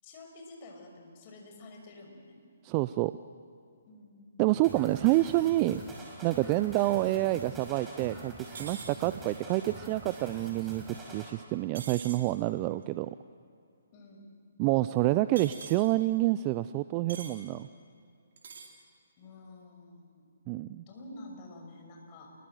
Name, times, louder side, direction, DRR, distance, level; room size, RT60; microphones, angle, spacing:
voice 1, 0.0-2.4 3.9-4.4 6.5-6.7 13.9-14.3 19.2-20.3 20.9-22.3, left 2 dB, 35° left, 2 dB, 6.2 m, -49 dB
voice 2, 2.6-3.1 4.4-5.8 6.2-8.3 8.6-10.8 11.1-13.1 14.6-17.7 20.5-20.8, right 17 dB, 30° right, 13 dB, 0.5 m, -28 dB
sound 1, 4.6-11.3, right 1 dB, 10° right, 5.4 m, -45 dB
sound 2, 8.5-8.9 11.7-12.2 15.4-15.8 17.1-17.4 18.4-18.7, right 5 dB, 60° right, 4.4 m, -43 dB
29.0 x 22.0 x 7.8 m, 2.5 s
hypercardioid pair, 145°, 0 cm